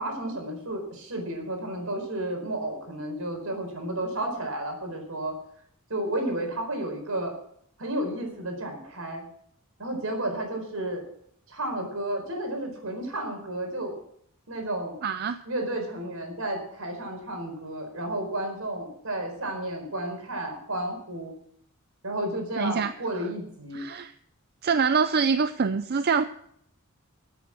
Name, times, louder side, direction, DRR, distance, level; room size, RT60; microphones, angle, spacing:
voice 1, 0.0-5.4 5.9-7.3 7.8-9.2 9.8-11.0 11.5-13.9 14.5-14.9 15.4-21.3 22.0-23.8, right 1 dB, 75° right, 3 dB, 4.5 m, -32 dB
voice 2, 15.0-15.4 22.6-22.9 23.7-24.1 24.6-26.2, right 5 dB, 45° right, 10 dB, 0.5 m, -25 dB
15.0 x 8.4 x 6.0 m, 0.67 s
head